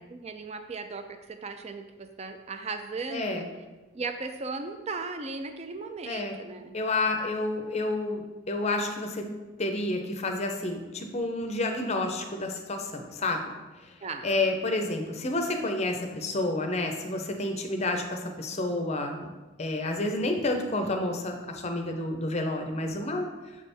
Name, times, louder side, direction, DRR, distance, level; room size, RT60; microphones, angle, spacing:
voice 1, 0.0-3.5 3.9-6.7 14.0-14.3, right 3 dB, 30° right, 7 dB, 0.4 m, -37 dB
voice 2, 3.1-3.5 6.0-6.3 6.7-9.2 9.6-13.4 14.2-19.3 19.6-23.3, left 2 dB, 30° left, 4 dB, 0.6 m, -29 dB
7.3 x 3.4 x 4.3 m, 1.2 s
head